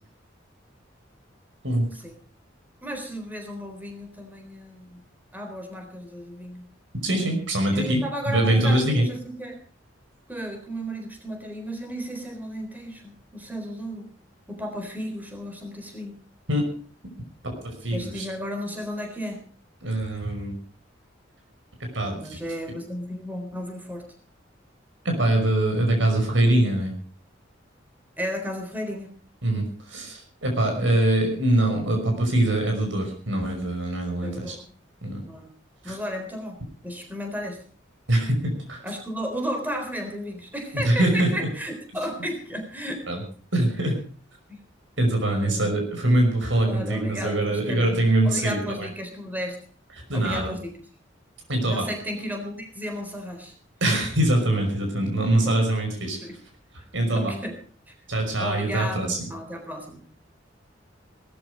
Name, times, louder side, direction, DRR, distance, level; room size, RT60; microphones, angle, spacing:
voice 1, 2.8-5.0 5.3-6.7 7.7-9.6 10.3-14.1 14.5-16.2 17.9-19.4 22.2-24.1 28.2-29.1 34.2-34.8 35.3-35.5 35.8-36.6 36.8-37.6 38.8-43.1 44.5-44.6 45.2-45.8 46.7-49.6 50.1-50.7 51.6-53.5 55.1-55.6 56.2-56.4 57.1-57.6 57.9-58.0 58.4-60.0, equal, 10° right, 4 dB, 3.9 m, -34 dB
voice 2, 7.0-8.0 8.3-9.0 16.5-16.7 17.4-18.3 19.8-20.6 21.9-22.2 25.0-26.9 29.4-34.6 35.0-35.2 35.8-35.9 38.1-38.8 40.8-41.5 43.1-43.2 43.5-44.0 45.0-48.9 50.1-50.5 51.5-51.8 53.8-56.2 56.9-57.3 58.1-59.2, right 1 dB, 85° right, 3 dB, 5.6 m, -23 dB
18.5 x 13.5 x 5.1 m, 0.42 s
head